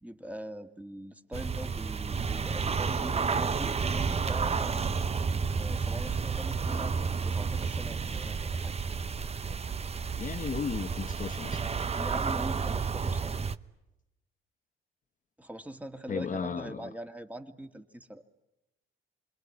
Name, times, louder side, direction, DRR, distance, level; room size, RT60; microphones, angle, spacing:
voice 1, 0.0-4.8 5.5-7.0 7.2-8.7 10.6-10.7 11.9-13.4 15.4-18.2, right 1 dB, 5° right, 2.2 m, -42 dB
sound 1, 1.3-13.6, right 5 dB, 30° right, 1.0 m, -31 dB
voice 2, 10.2-11.6 16.1-16.9, left 6 dB, 40° left, 1.2 m, -35 dB
27.5 x 22.5 x 9.7 m
cardioid pair, 90°, 20 cm